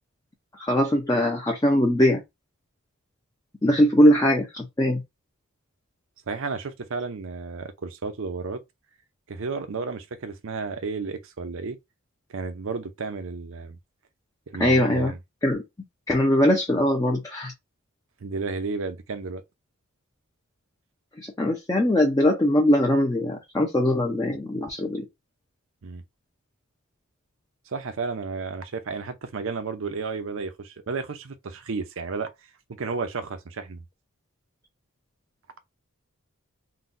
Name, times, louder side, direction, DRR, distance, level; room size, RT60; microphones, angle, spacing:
voice 1, 0.6-2.2 3.6-5.0 14.6-15.1 15.4-15.6 16.1-17.5 21.2-25.0, left 1 dB, 15° left, 0.5 m, -21 dB
voice 2, 6.3-8.6 9.3-11.8 12.3-13.8 14.5-15.2 18.2-19.4 25.8-26.0 27.7-32.3 32.7-33.8, right 4 dB, 65° right, 0.6 m, -32 dB
3.9 x 2.2 x 2.6 m
head